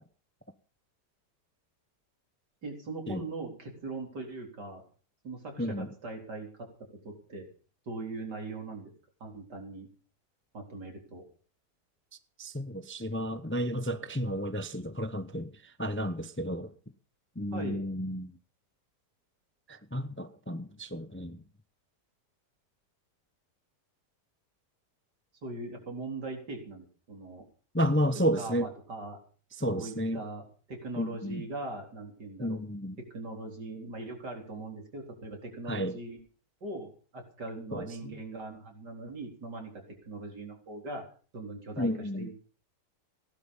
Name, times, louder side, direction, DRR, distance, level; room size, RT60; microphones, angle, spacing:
voice 1, 2.6-4.8 5.2-6.7 7.0-7.5 7.9-8.9 9.2-9.9 10.5-11.2 17.5-17.8 25.4-27.4 28.4-29.2 29.7-32.6 33.1-36.2 36.6-41.0 41.3-41.9 42.2-42.3, right 2 dB, 70° right, 4.6 m, -40 dB
voice 2, 5.6-5.9 12.4-16.7 17.4-18.3 19.7-21.4 27.7-28.7 29.6-30.2 31.0-31.5 32.4-33.0 35.7-35.9 37.7-37.9 41.8-42.3, equal, 15° left, 0.4 m, -32 dB
17.0 x 11.5 x 5.5 m
omnidirectional pair, 1.8 m